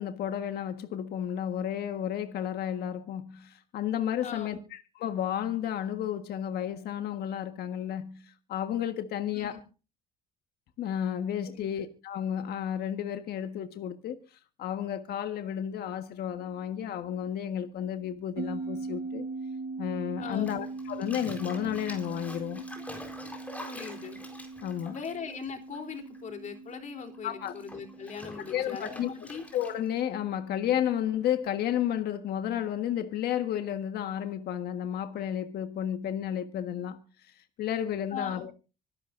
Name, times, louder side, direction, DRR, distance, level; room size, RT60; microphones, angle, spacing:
voice 1, 0.0-9.6 10.8-19.2 19.8-22.6 24.6-25.0 27.2-27.5 28.5-29.1 29.5-38.5, left 10 dB, 70° left, 1.5 m, -32 dB
voice 2, 4.2-4.6 9.3-9.5 11.5-11.7 20.2-20.5 23.6-24.2 24.9-29.4 38.1-38.4, left 6 dB, 45° left, 3.5 m, -39 dB
sound 1, 18.4-31.1, right 3 dB, 60° right, 1.1 m, -41 dB
Bathtub (filling or washing), 20.3-26.2 26.4-30.0, left 1 dB, 10° left, 4.2 m, -46 dB
25.5 x 11.5 x 2.6 m
cardioid pair, 110°, 17 cm